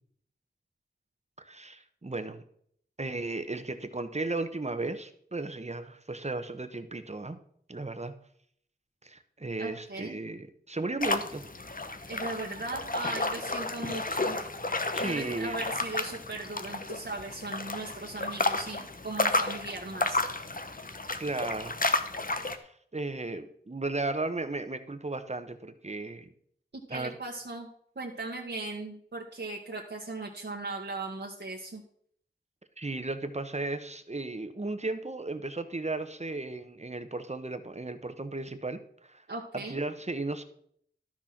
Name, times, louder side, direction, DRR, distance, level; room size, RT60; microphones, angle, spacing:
voice 1, 1.4-2.4 3.0-7.4 7.7-8.1 9.0-11.4 14.9-15.6 21.2-21.8 22.6-26.3 26.9-27.1 32.8-39.2 39.5-40.4, right 2 dB, 35° right, 9 dB, 1.2 m, -35 dB
voice 2, 9.6-10.2 12.1-14.4 15.0-20.2 26.9-27.7 27.9-31.8 39.3-39.8, right 2 dB, 65° right, -3 dB, 1.6 m, -38 dB
sound 1, 11.0-22.6, left 2 dB, 45° left, 1.1 m, -32 dB
12.5 x 6.4 x 6.0 m, 0.64 s
wide cardioid pair, 55°, 19 cm